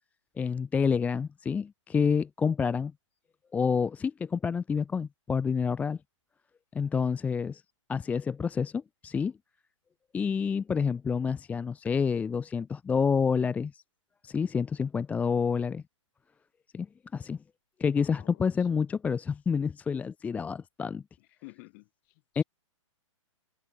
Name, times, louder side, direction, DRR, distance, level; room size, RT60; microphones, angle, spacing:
voice 1, 0.4-2.9 3.5-6.0 6.7-7.6 7.9-9.3 10.1-13.8 14.2-15.8 16.7-16.9 17.1-17.4 17.8-21.0 22.3-22.4, left 6 dB, 10° left, 0.6 m, -28 dB
voice 2, 17.9-18.7 21.2-22.4, left 31 dB, 35° left, 4.1 m, -53 dB
hypercardioid pair, 135°, 17 cm